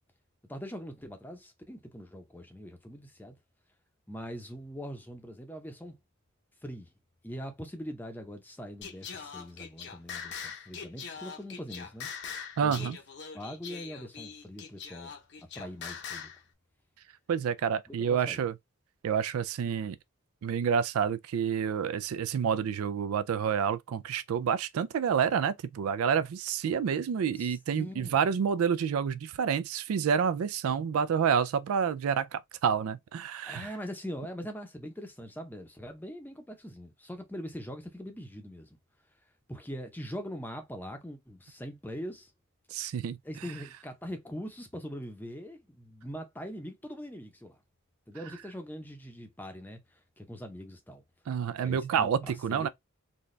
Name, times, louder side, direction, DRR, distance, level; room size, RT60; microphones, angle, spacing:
voice 1, 0.4-3.4 4.1-6.0 6.6-6.9 7.2-12.1 12.6-12.9 13.3-15.1 15.5-16.3 17.9-18.4 27.3-28.2 33.4-38.8 39.5-42.3 43.2-47.6 48.1-49.8 50.2-51.0 51.6-52.1 52.5-52.7, equal, 10° left, 0.6 m, -42 dB
Singing, 8.8-16.4, left 6 dB, 55° left, 0.7 m, -42 dB
voice 2, 12.6-13.0 17.3-18.5 19.0-20.0 20.4-33.7 42.7-43.2 51.3-52.7, right 7 dB, 80° right, 0.3 m, -28 dB
4.1 x 2.3 x 3.1 m
head